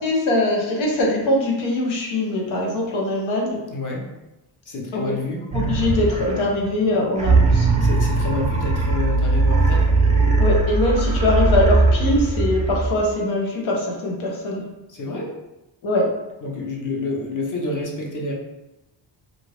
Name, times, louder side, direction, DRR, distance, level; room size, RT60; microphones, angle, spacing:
voice 1, 0.0-3.6 4.9-5.1 5.5-7.7 10.4-14.6 15.8-16.0, left 1 dB, 85° left, -1 dB, 0.9 m, -22 dB
voice 2, 3.7-4.0 4.7-5.4 7.8-9.9 14.9-15.3 16.4-18.3, left 3 dB, 40° left, -2 dB, 0.9 m, -28 dB
sound 1, 5.5-6.6 7.2-13.1, right 3 dB, 15° right, 0.5 m, -19 dB
2.5 x 2.5 x 3.2 m, 0.96 s
cardioid pair, 90°, 46 cm